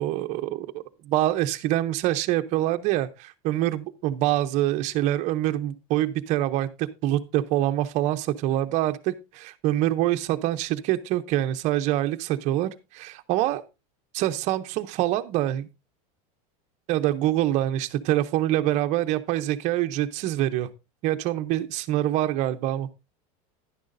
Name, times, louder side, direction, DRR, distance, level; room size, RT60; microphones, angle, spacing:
voice 1, 0.0-13.6 14.1-15.7 16.9-20.7 21.0-22.9, right 14 dB, 40° right, 0.6 m, -25 dB
10.5 x 10.5 x 2.5 m
supercardioid pair, 160°, 19 cm